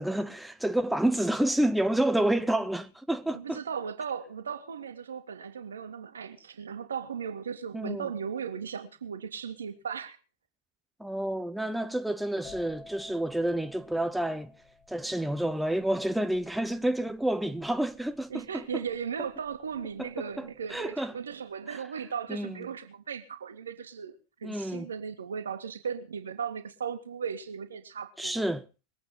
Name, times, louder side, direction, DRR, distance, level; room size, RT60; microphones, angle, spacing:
voice 1, 0.0-3.6 7.7-8.1 11.0-14.5 14.9-18.8 20.0-20.1 20.4-21.1 22.3-22.6 24.4-24.9 28.2-28.6, right 1 dB, 5° right, 0.8 m, -29 dB
voice 2, 3.3-10.2 18.3-24.2 24.4-28.4, right 7 dB, 70° right, 2.1 m, -37 dB
sound 1, 12.4-20.0 20.3-20.8, left 3 dB, 30° left, 6.1 m, -53 dB
22.5 x 8.5 x 5.5 m
figure-of-eight pair, 90°, 0 cm